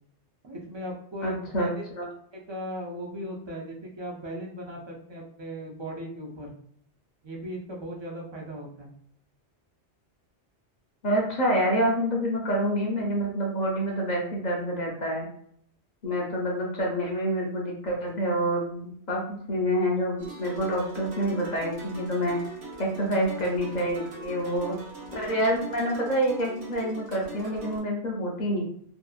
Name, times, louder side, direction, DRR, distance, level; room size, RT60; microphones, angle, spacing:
voice 1, 0.4-1.9 2.3-6.5 7.2-8.9, equal, 35° right, -1 dB, 0.5 m, -38 dB
voice 2, 1.2-1.7 2.0-2.1 11.0-15.3 16.0-19.2 19.5-22.4 22.8-24.8 25.1-28.6, equal, 50° left, -2 dB, 0.7 m, -27 dB
sound 1, 20.2-27.8, right 4 dB, 80° right, 1.1 m, -42 dB
2.7 x 2.3 x 2.3 m, 0.65 s
omnidirectional pair, 1.1 m